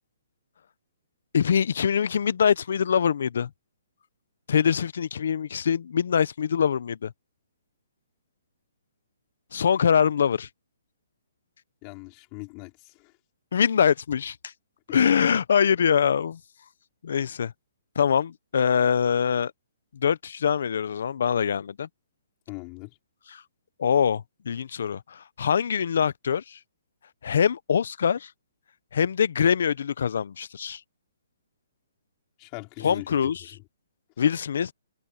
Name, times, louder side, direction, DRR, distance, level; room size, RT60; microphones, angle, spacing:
voice 1, 1.3-3.5 4.5-7.1 9.5-10.5 13.5-14.5 14.9-16.4 17.0-17.5 18.0-19.5 19.9-21.9 23.3-23.4 23.8-26.6 27.2-28.3 28.9-30.8 32.8-33.4 34.2-34.7, left 7 dB, 65° left, 0.8 m, -23 dB
voice 2, 11.8-13.1 14.9-15.0 22.5-23.0 32.4-33.6, left 30 dB, 30° left, 4.6 m, -40 dB
open air
hypercardioid pair, 155°, 0 cm